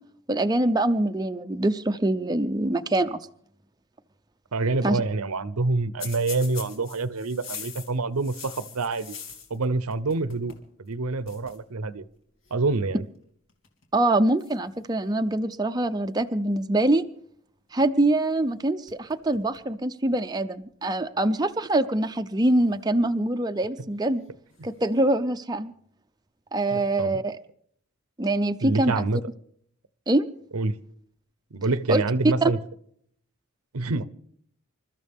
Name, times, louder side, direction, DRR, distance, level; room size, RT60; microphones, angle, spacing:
voice 1, 0.3-3.3 4.8-5.0 13.9-17.0 17.7-24.2 24.6-25.7 26.5-27.4 28.2-29.0 30.1-30.2 31.9-32.0 32.4-32.5, right 1 dB, 20° right, 7 dB, 0.5 m, -24 dB
voice 2, 4.5-9.2 9.5-12.0 12.5-13.0 26.7-27.2 28.6-29.2 30.5-30.8 31.5-32.6 33.7-34.1, right 3 dB, 90° right, 15 dB, 0.8 m, -27 dB
sound 1, 6.0-9.6 9.9-10.7 10.9-11.0 11.2-11.6 12.4-12.7 13.5-13.8 14.4-15.4 18.4-18.5 18.9-19.7 20.1-20.2 21.1-21.2 22.4-23.3 24.5-25.1, left 6 dB, 65° left, 2.7 m, -43 dB
27.5 x 13.5 x 3.6 m, 0.65 s
head